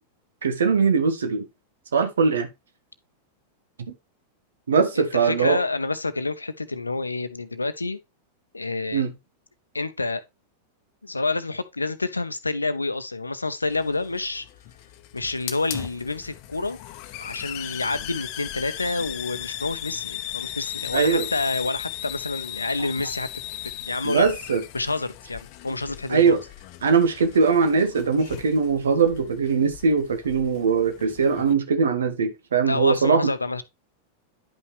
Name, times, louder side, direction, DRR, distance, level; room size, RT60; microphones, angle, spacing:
voice 1, 0.4-1.5 1.9-2.5 3.9-4.0 4.7-5.6 8.9-9.1 20.9-21.3 24.0-24.6 26.1-26.4 26.8-33.3, right 5 dB, 65° right, 1.4 m, -21 dB
voice 2, 4.9-8.0 8.5-9.0 9.7-10.2 11.0-14.5 15.1-16.8 17.2-23.3 23.7-24.2 24.7-26.4 32.6-33.6, left 3 dB, 80° left, 0.7 m, -28 dB
Hiss, 13.6-31.5, left 13 dB, 45° left, 0.9 m, -37 dB
10.5 x 5.6 x 3.1 m
figure-of-eight pair, 90°, 0 cm